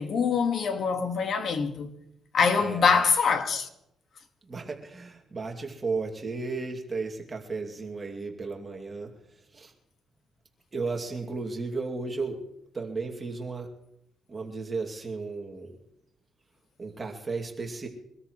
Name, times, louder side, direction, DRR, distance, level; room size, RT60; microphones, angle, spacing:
voice 1, 0.0-1.9 2.3-3.7, left 5 dB, 55° left, 1.7 m, -24 dB
voice 2, 2.6-3.0 4.4-9.1 9.5-9.7 10.7-12.4 12.7-13.7 14.3-15.7 16.8-17.9, right 4 dB, 30° right, 2.5 m, -34 dB
24.0 x 13.5 x 3.2 m
cardioid pair, 90°, 0 cm